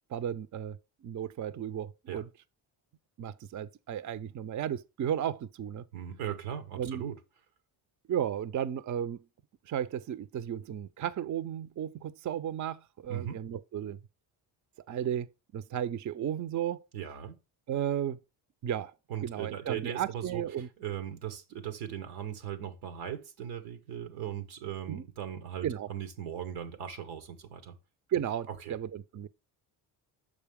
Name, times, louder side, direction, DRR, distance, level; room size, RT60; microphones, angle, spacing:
voice 1, 0.1-0.8 1.0-2.3 3.2-5.8 6.8-7.0 8.1-9.2 9.7-14.0 14.9-15.3 15.5-16.9 17.7-18.2 18.6-18.9 19.2-20.7 24.9-25.0 25.6-25.9 28.1-29.3, right 9 dB, 40° right, 0.5 m, -34 dB
voice 2, 5.9-7.2 13.1-13.4 16.9-17.3 19.1-27.7 28.5-28.8, right 9 dB, 90° right, 1.1 m, -38 dB
6.7 x 4.9 x 3.5 m
supercardioid pair, 55°, 49 cm